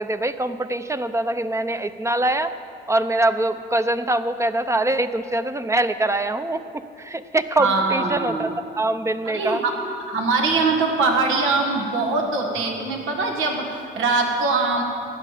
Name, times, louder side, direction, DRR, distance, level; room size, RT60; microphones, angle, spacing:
voice 1, 0.0-2.5 2.9-9.6, right 1 dB, 15° right, 11 dB, 0.6 m, -23 dB
voice 2, 7.6-8.5 9.2-9.7 10.1-14.8, right 3 dB, 85° right, 2 dB, 1.6 m, -22 dB
16.5 x 10.5 x 5.0 m, 2.6 s
cardioid pair, 90°, 20 cm